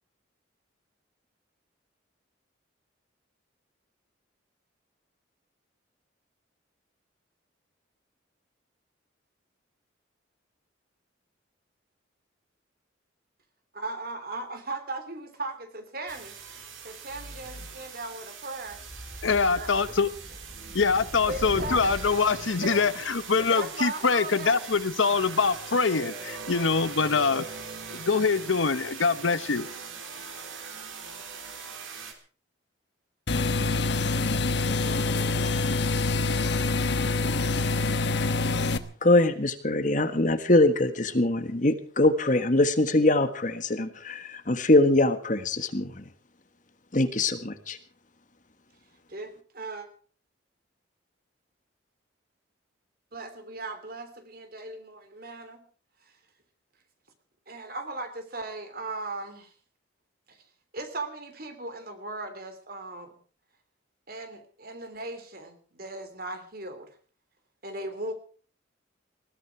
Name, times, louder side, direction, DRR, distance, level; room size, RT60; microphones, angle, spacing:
voice 1, 13.7-18.8 19.4-20.0 21.3-21.9 22.6-22.9 23.4-24.6 34.6-35.4 49.1-49.9 53.1-55.6 57.5-59.5 60.3-60.4 60.7-63.2 64.1-66.9 67.6-68.1, right 2 dB, 50° right, 8 dB, 3.1 m, -38 dB
sound 1, 16.1-32.1, right 5 dB, 85° right, 3.7 m, -41 dB
sound 2, 18.7-22.3, equal, ahead, 3.8 m, -41 dB
voice 2, 19.2-20.1 20.7-27.5 27.9-29.7, left 4 dB, 80° left, 15 dB, 0.9 m, -24 dB
sound 3, 33.3-38.8, left 3 dB, 60° left, 1.2 m, -26 dB
voice 3, 39.0-46.0 46.9-47.8, left 2 dB, 40° left, 9 dB, 1.5 m, -23 dB
20.5 x 14.5 x 4.7 m, 0.42 s
head